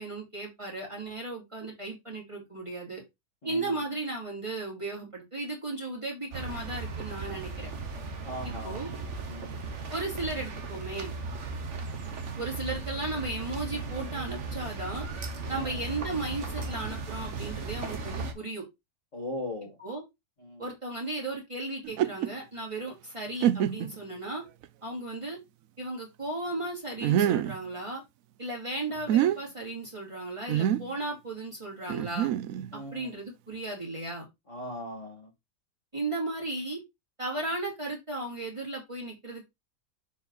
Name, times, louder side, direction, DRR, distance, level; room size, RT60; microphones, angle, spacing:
voice 1, 0.0-3.0 3.4-7.7 8.4-8.9 9.9-11.1 12.4-15.1 15.5-18.6 19.8-20.0 20.6-24.4 24.8-25.4 25.8-28.0 28.4-32.3 32.7-34.3 35.9-36.8 37.2-39.4, right 2 dB, 15° right, 2.7 m, -35 dB
voice 2, 3.4-3.8 8.2-8.9 9.3-9.6 15.5-15.8 19.1-19.8 20.4-20.6 32.7-33.1 34.5-35.3, left 1 dB, 45° left, 2.2 m, -39 dB
sound 1, 6.3-18.3, right 3 dB, 45° right, 1.3 m, -37 dB
sound 2, 21.8-22.3 22.9-23.0 23.4-24.0 24.6-24.7 27.0-27.6 28.9-29.4 30.5-30.9 31.9-32.7, right 11 dB, 70° right, 0.8 m, -26 dB
7.1 x 4.3 x 3.9 m
omnidirectional pair, 1.9 m